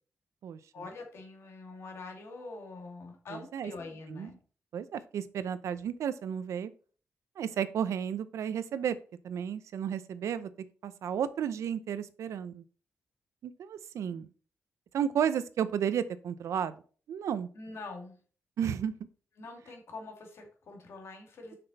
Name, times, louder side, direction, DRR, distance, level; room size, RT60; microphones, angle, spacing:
voice 1, 0.7-4.4 17.5-18.2 19.4-21.6, left 3 dB, 60° left, 2 dB, 2.2 m, -44 dB
voice 2, 3.3-3.7 4.1-4.3 4.7-6.7 7.4-9.0 9.2-10.5 10.8-12.6 13.4-14.3 14.9-16.7 17.1-17.5 18.6-18.9, right 8 dB, 85° right, 14 dB, 0.6 m, -32 dB
6.6 x 5.9 x 4.1 m, 0.40 s
wide cardioid pair, 155°, 5 cm